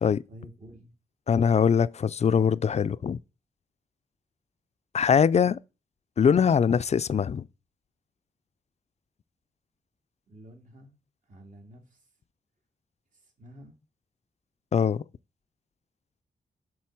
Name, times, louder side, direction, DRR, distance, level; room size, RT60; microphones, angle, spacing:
voice 1, 0.3-0.9 10.3-10.9 11.3-12.0 13.1-13.8, equal, 55° right, 2.3 m, -49 dB
voice 2, 1.3-3.2 4.9-5.6 6.2-7.4 14.7-15.0, left 7 dB, 45° left, 0.4 m, -22 dB
7.7 x 3.8 x 6.0 m
cardioid pair, 80°, 16 cm